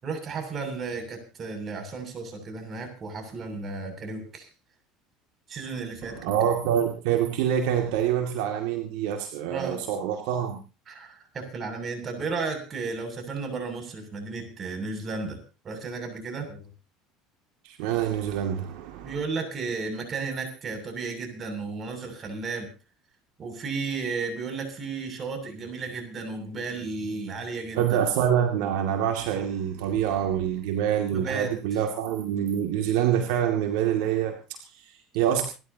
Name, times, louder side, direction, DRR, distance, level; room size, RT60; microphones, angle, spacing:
voice 1, 0.0-4.5 5.5-6.4 9.5-9.8 10.9-15.4 15.6-16.7 19.0-22.7 23.4-28.0 31.1-31.5, right 4 dB, 35° right, 6 dB, 7.2 m, -33 dB
voice 2, 6.0-10.6 17.6-19.2 27.7-35.4, right 9 dB, 75° right, 3 dB, 2.4 m, -26 dB
28.5 x 12.5 x 2.9 m, 0.33 s
supercardioid pair, 90°, 0 cm